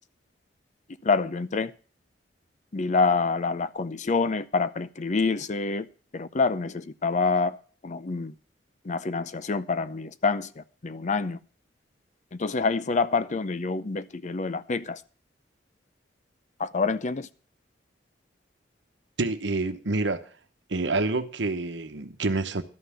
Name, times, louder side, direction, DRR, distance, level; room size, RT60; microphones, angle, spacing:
voice 1, 1.0-1.7 2.7-5.9 6.1-7.6 7.8-8.3 8.8-11.4 12.3-15.0 16.6-17.3, left 4 dB, 40° left, 0.6 m, -27 dB
voice 2, 19.2-20.2 20.7-22.6, right 3 dB, 75° right, 1.0 m, -27 dB
12.5 x 5.7 x 8.3 m
head